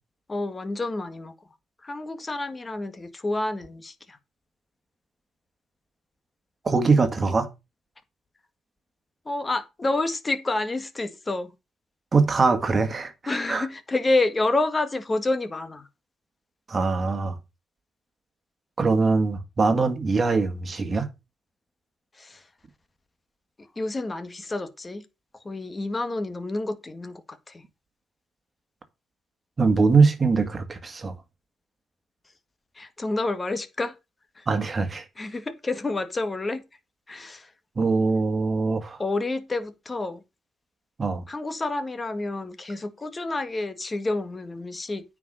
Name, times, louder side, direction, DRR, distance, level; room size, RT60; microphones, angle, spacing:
voice 1, 0.3-1.3 1.8-4.2 9.3-11.5 13.3-15.9 22.2-22.4 23.8-25.0 25.5-27.2 27.5-27.6 32.8-33.9 34.4-34.5 35.2-36.6 37.1-37.5 39.0-40.2 41.3-45.0, left 2 dB, 25° left, 1.8 m, -29 dB
voice 2, 6.6-7.5 12.1-13.7 16.7-17.4 18.8-21.1 29.6-31.1 34.5-35.1 37.8-39.0 41.0-41.2, right 4 dB, 35° right, 1.9 m, -22 dB
9.4 x 5.2 x 6.4 m
cardioid pair, 90°, 0 cm